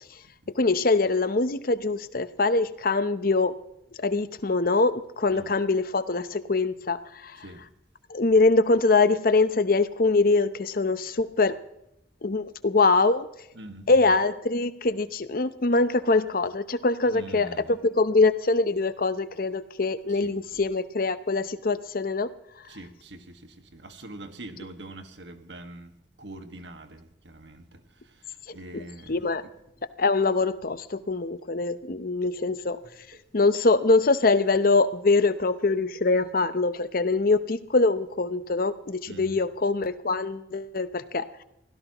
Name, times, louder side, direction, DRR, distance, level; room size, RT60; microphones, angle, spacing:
voice 1, 0.6-3.5 4.0-7.4 8.1-11.6 12.2-13.3 13.9-22.3 28.7-28.8 29.1-29.4 30.0-32.8 33.3-41.4, left 3 dB, 50° left, 0.8 m, -23 dB
voice 2, 13.5-14.0 17.1-17.7 20.1-20.3 22.7-29.3 32.8-32.9 39.0-39.4, right 1 dB, 75° right, 1.7 m, -44 dB
24.0 x 16.5 x 3.0 m
head